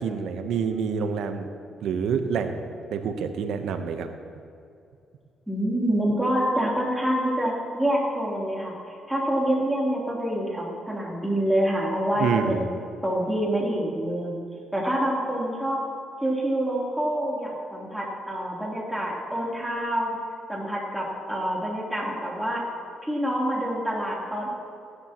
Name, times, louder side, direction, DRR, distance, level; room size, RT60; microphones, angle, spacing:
voice 1, 0.0-1.5 1.8-4.1 12.2-12.6, right 6 dB, 80° right, 7 dB, 0.9 m, -27 dB
voice 2, 5.5-8.7 9.1-12.6 13.0-14.4 14.7-15.8 16.2-20.2 20.5-22.6 23.0-24.5, right 1 dB, 5° right, -4 dB, 3.3 m, -26 dB
17.5 x 11.5 x 3.0 m, 2.5 s
cardioid pair, 90°, 0 cm